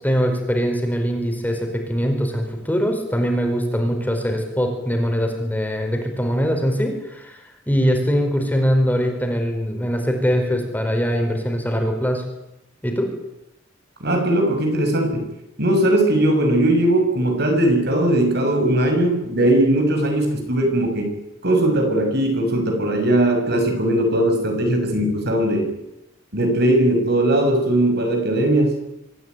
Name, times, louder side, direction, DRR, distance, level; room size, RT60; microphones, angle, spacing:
voice 1, 0.0-7.4 7.7-12.3 12.8-13.1, equal, 10° left, 3 dB, 4.8 m, -22 dB
voice 2, 14.0-15.3 15.6-21.2 21.4-25.7 26.3-28.8, right 1 dB, 60° right, 4 dB, 6.1 m, -19 dB
25.5 x 15.5 x 9.3 m, 0.89 s
head